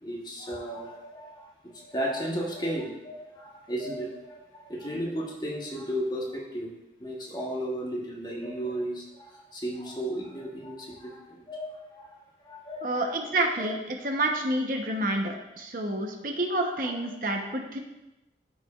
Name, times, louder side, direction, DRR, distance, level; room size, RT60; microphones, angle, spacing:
voice 1, 0.0-6.7 7.0-12.2 12.4-13.0 13.6-13.7 16.6-16.8 17.3-17.6, equal, 25° left, -2 dB, 1.1 m, -34 dB
voice 2, 12.8-17.8, right 1 dB, 50° right, 2 dB, 0.8 m, -29 dB
13.5 x 4.9 x 2.4 m, 0.96 s
head